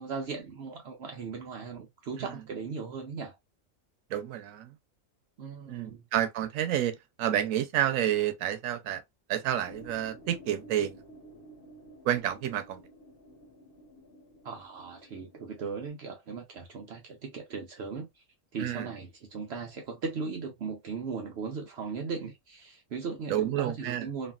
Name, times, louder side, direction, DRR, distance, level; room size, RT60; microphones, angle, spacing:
voice 1, 0.0-3.4 5.4-6.0 14.4-18.2 18.5-24.3, right 5 dB, 60° right, 0.8 m, -38 dB
voice 2, 4.1-4.7 5.7-9.0 9.3-11.0 12.0-12.8 18.6-18.9 23.3-24.1, right 11 dB, 90° right, 1.0 m, -29 dB
sound 1, 9.7-15.9, right 1 dB, 50° left, 1.1 m, -52 dB
3.1 x 2.4 x 2.3 m
omnidirectional pair, 1.4 m